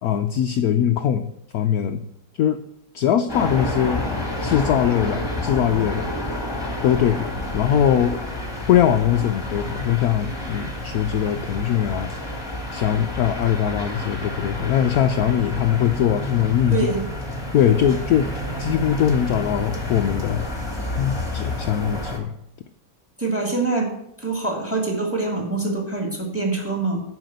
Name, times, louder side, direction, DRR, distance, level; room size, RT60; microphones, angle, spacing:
voice 1, 0.0-1.3 1.5-2.0 2.4-2.6 2.9-4.0 4.4-6.1 6.8-8.2 8.7-12.1 12.7-16.9 17.5-18.3 18.6-20.5 21.0-22.3, left 9 dB, 70° left, 8 dB, 0.8 m, -21 dB
sound 1, 3.3-22.2, left 1 dB, 15° left, 1.7 m, -29 dB
voice 2, 16.7-17.0 23.2-23.9 24.2-27.0, right 3 dB, 5° right, 2 dB, 2.5 m, -24 dB
9.2 x 5.8 x 7.8 m, 0.79 s
omnidirectional pair, 2.2 m